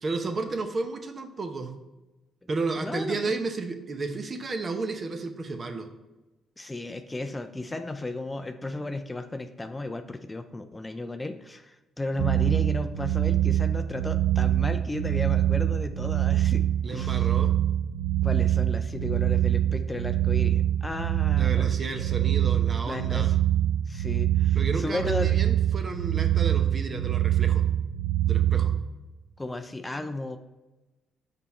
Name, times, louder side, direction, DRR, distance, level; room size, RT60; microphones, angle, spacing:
voice 1, 0.0-1.7 2.5-5.9 16.8-17.6 21.4-23.3 24.5-27.6 28.3-28.7, right 3 dB, 40° right, 6 dB, 0.7 m, -32 dB
voice 2, 2.8-3.4 6.6-16.6 16.9-17.3 18.2-21.7 22.0-22.3 22.8-23.3 23.9-25.4 26.2-26.3 29.4-30.4, left 2 dB, 15° left, 7 dB, 0.4 m, -34 dB
sound 1, 12.2-28.8, right 12 dB, 80° right, 0.4 m, -24 dB
5.4 x 4.2 x 4.3 m, 1.1 s
cardioid pair, 90°, 0 cm